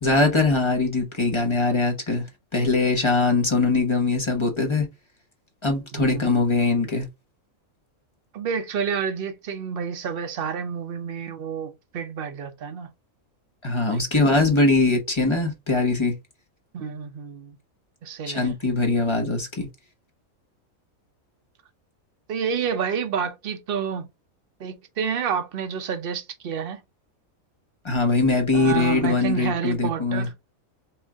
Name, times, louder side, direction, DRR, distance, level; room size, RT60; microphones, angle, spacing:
voice 1, 0.0-2.3 2.5-4.9 5.6-7.1 13.6-16.2 18.2-19.7 27.8-30.3, left 3 dB, 20° left, 1.0 m, -22 dB
voice 2, 5.9-6.5 8.3-12.9 13.9-14.0 16.7-17.6 18.0-18.5 22.3-24.1 24.6-26.8 28.5-30.3, right 7 dB, 50° right, 0.8 m, -29 dB
4.5 x 2.5 x 3.4 m
omnidirectional pair, 1.5 m